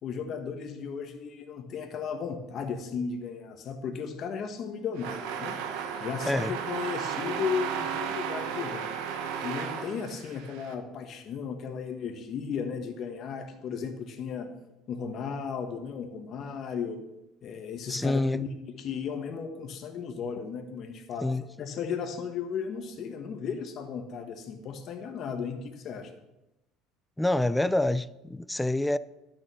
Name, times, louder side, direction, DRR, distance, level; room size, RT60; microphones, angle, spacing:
voice 1, 0.0-5.6 6.0-8.9 9.4-14.5 14.9-17.0 17.4-21.3 21.6-26.1, left 6 dB, 45° left, 1.5 m, -35 dB
sound 1, 5.0-10.7, right 7 dB, 80° right, 1.2 m, -34 dB
voice 2, 6.3-6.6 17.9-18.4 21.2-21.4 27.2-29.0, left 1 dB, 5° left, 0.3 m, -27 dB
12.0 x 6.9 x 6.1 m
cardioid pair, 145°, 0 cm